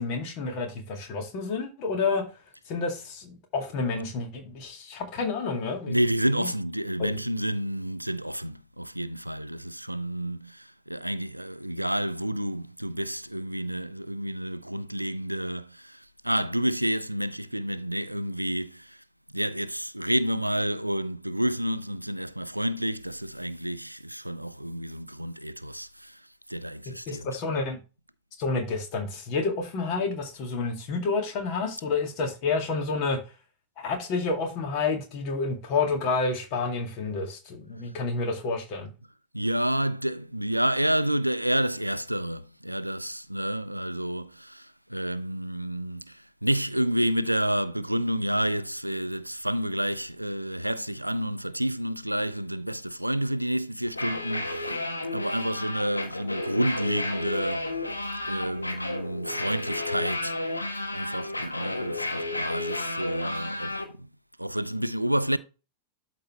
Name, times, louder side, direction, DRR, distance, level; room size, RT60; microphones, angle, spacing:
voice 1, 0.0-2.2 2.7-6.0 6.3-6.5 7.0-7.2 27.1-27.8 28.4-33.2 33.8-38.9, left 4 dB, 45° left, 2.2 m, -29 dB
voice 2, 5.9-19.0 19.3-26.2 26.5-27.3 39.3-57.9 58.3-60.4 60.9-64.1 64.4-65.4, right 1 dB, 90° right, 0.4 m, -29 dB
sound 1, 53.9-63.8, left 2 dB, 85° left, 1.2 m, -32 dB
12.5 x 4.2 x 3.1 m
figure-of-eight pair, 90°, 0 cm